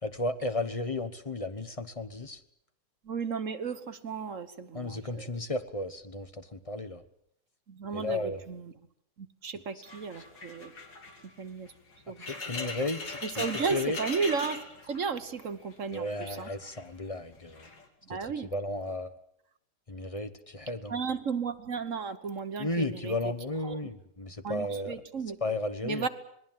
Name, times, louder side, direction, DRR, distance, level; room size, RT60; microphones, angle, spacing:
voice 1, 0.0-2.4 4.7-7.0 7.9-8.4 12.2-13.4 13.7-14.0 15.9-17.7 18.1-18.2 18.5-19.1 19.9-21.0 22.6-25.0 25.4-26.1, left 2 dB, 20° left, 9 dB, 1.1 m, -34 dB
voice 2, 3.0-5.3 7.7-8.7 9.2-10.7 11.4-11.7 12.1-12.3 13.2-16.5 18.1-18.5 20.9-23.3 23.6-23.8 24.4-25.4 25.8-26.1, right 5 dB, 45° right, 10 dB, 1.4 m, -34 dB
sound 1, 9.9-15.4 15.7-16.9 17.5-17.9, left 3 dB, 70° left, 3.5 m, -40 dB
27.0 x 20.5 x 7.5 m, 0.73 s
omnidirectional pair, 2.0 m